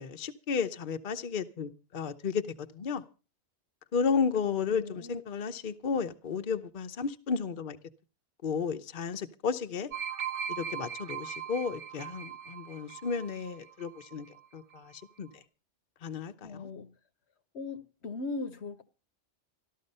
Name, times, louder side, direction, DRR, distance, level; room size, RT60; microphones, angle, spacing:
voice 1, 0.0-2.4 2.7-3.0 3.9-7.8 8.4-9.9 10.5-14.3 14.5-15.3 16.0-16.7, left 5 dB, 50° left, 0.9 m, -33 dB
voice 2, 4.4-5.2 16.4-16.9 17.5-18.8, left 3 dB, 65° left, 1.2 m, -39 dB
sound 1, 9.9-14.5 14.8-15.0, right 8 dB, 80° right, 1.3 m, -39 dB
13.5 x 13.0 x 5.4 m
omnidirectional pair, 1.2 m